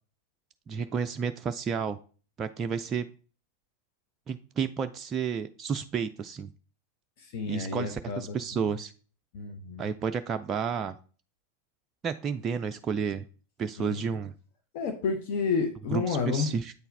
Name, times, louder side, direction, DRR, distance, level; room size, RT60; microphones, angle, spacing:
voice 1, 0.7-2.0 2.4-3.1 4.3-6.5 7.5-8.9 9.8-10.9 12.0-13.2 13.6-14.3 15.9-16.7, right 6 dB, 25° right, 7 dB, 0.3 m, -31 dB
voice 2, 7.2-8.4 9.3-9.9 13.8-14.0 14.7-16.5, left 5 dB, 50° left, 4 dB, 0.8 m, -30 dB
8.1 x 4.5 x 3.3 m, 0.39 s
figure-of-eight pair, 90°, 0 cm